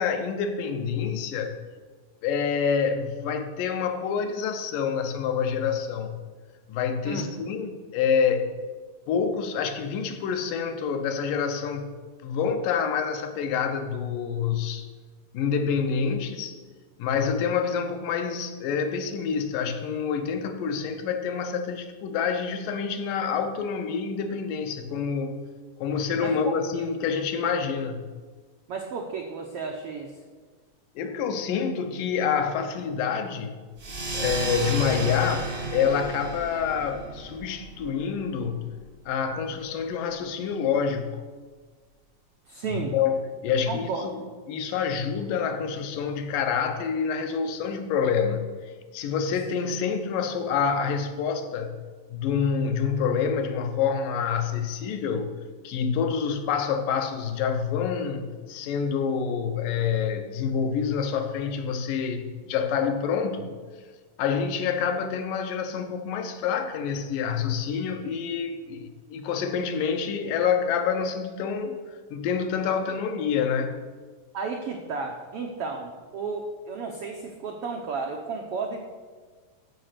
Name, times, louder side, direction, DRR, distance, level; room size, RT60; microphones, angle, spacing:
voice 1, 0.0-1.6 2.2-6.2 6.7-8.6 9.1-12.0 12.2-14.9 15.3-16.6 17.0-25.4 25.8-28.1 31.0-33.6 34.1-38.7 39.1-41.2 42.7-48.5 48.9-51.8 52.1-55.3 55.6-63.5 64.2-73.8, left 6 dB, 80° left, 6 dB, 2.4 m, -27 dB
voice 2, 26.2-26.8 28.7-30.1 42.5-42.9 43.7-44.1 74.3-78.8, right 4 dB, 85° right, 2 dB, 1.3 m, -33 dB
sound 1, 33.8-38.9, right 2 dB, 45° right, 0.8 m, -33 dB
13.5 x 5.1 x 6.7 m, 1.5 s
omnidirectional pair, 3.9 m